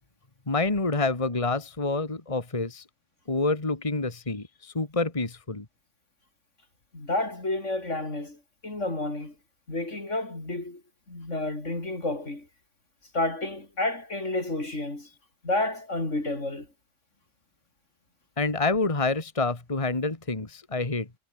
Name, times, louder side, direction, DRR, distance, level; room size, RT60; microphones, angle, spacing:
voice 1, 0.5-2.8 3.3-5.7 18.4-21.1, left 3 dB, 25° left, 2.0 m, -27 dB
voice 2, 6.9-9.3 9.7-10.8 11.1-12.5 13.1-15.1 15.4-16.7, left 2 dB, 75° left, 5.6 m, -30 dB
omnidirectional pair, 1.3 m